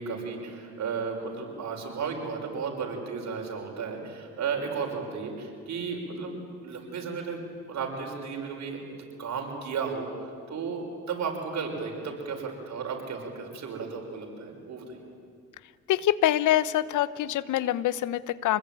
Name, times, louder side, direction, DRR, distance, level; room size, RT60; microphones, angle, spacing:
voice 1, 0.0-6.4 6.6-15.0, right 5 dB, 65° right, 1 dB, 5.8 m, -34 dB
voice 2, 15.9-18.6, left 13 dB, 80° left, 17 dB, 0.9 m, -25 dB
26.5 x 20.5 x 9.3 m, 2.1 s
cardioid pair, 90°, 30 cm